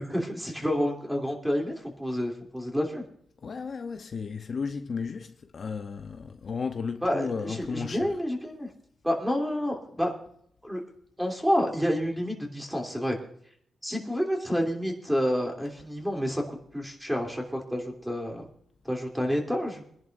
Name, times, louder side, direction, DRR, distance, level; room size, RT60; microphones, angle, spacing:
voice 1, 0.0-3.0 7.0-8.7 9.0-10.1 10.6-10.8 11.2-13.2 13.8-18.4 18.8-19.8, equal, 5° right, 3.0 m, -29 dB
voice 2, 3.4-8.1, left 5 dB, 50° left, 0.8 m, -34 dB
25.5 x 11.0 x 2.6 m
cardioid pair, 110°, 0 cm